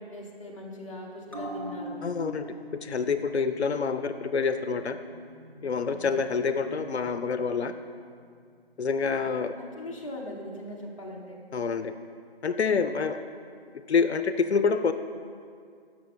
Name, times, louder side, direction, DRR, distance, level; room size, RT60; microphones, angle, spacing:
voice 1, 0.0-2.0 5.9-6.1 9.5-11.4, left 1 dB, 30° left, -2 dB, 0.9 m, -40 dB
sound 1, 1.3-8.2 8.5-8.6, equal, 20° right, 0.5 m, -43 dB
voice 2, 2.0-2.5 2.8-5.0 5.6-7.7 8.8-9.5 11.5-11.9 12.4-13.2 13.9-14.9, left 5 dB, 90° left, 10 dB, 0.5 m, -27 dB
13.0 x 5.2 x 3.2 m, 2.2 s
figure-of-eight pair, 160°, 32 cm